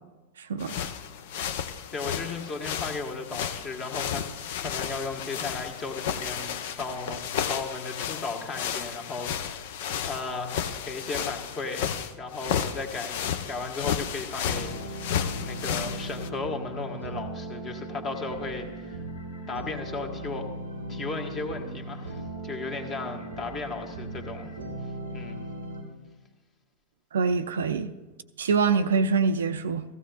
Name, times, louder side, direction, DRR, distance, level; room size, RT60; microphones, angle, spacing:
sound 1, 0.6-16.3, left 8 dB, 55° left, 0.6 m, -33 dB
voice 1, 1.9-4.3 4.6-9.7 10.0-15.1 15.4-19.0 19.5-20.4 20.9-24.5 25.1-25.4, left 3 dB, 25° left, 4 dB, 1.5 m, -35 dB
sound 2, 14.4-25.8, right 1 dB, 85° left, 2.7 m, -38 dB
voice 2, 27.1-27.9 28.4-29.8, right 5 dB, 65° right, 10 dB, 0.5 m, -24 dB
15.5 x 15.0 x 2.3 m, 1.2 s
figure-of-eight pair, 90°, 0 cm